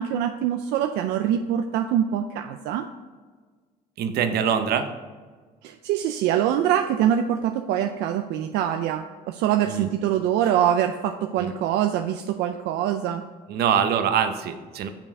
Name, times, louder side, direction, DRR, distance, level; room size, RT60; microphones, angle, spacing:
voice 1, 0.0-2.9 5.6-13.2, right 10 dB, 90° right, 7 dB, 0.5 m, -24 dB
voice 2, 4.0-4.9 9.7-9.9 11.4-11.6 13.5-14.9, right 8 dB, 70° right, 8 dB, 0.8 m, -24 dB
6.9 x 5.8 x 4.7 m, 1.4 s
cardioid pair, 110°, 17 cm